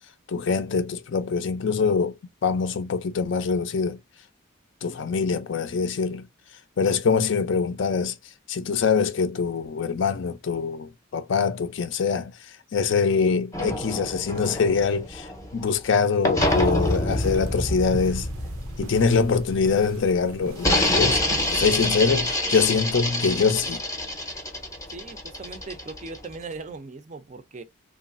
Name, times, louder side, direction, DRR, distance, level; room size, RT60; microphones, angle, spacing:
voice 1, 0.3-4.0 4.8-6.3 6.8-8.2 8.5-18.3 18.8-21.2 21.5-23.8, left 5 dB, 60° left, 0.4 m, -24 dB
sound 1, 13.5-15.8 16.2-19.9 20.6-26.4, left 1 dB, 15° left, 0.6 m, -27 dB
sound 2, 16.4-21.6, right 3 dB, 90° right, 0.5 m, -41 dB
voice 2, 24.9-27.6, right 3 dB, 35° right, 0.4 m, -39 dB
3.0 x 2.3 x 2.4 m
head